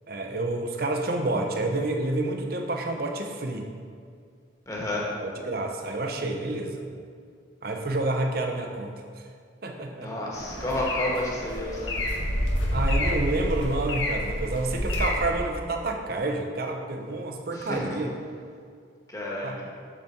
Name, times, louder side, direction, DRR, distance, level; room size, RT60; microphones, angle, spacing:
voice 1, 0.1-3.7 5.2-6.9 7.6-9.2 9.6-10.1 12.7-18.1 19.4-19.6, right 2 dB, 50° right, 3 dB, 0.7 m, -29 dB
voice 2, 4.7-5.1 10.0-11.9 17.5-18.0 19.1-19.5, left 1 dB, 15° left, -4 dB, 1.4 m, -30 dB
sound 1, 10.3-15.3, left 1 dB, 85° left, 1.3 m, -28 dB
7.3 x 6.6 x 4.3 m, 2.2 s
head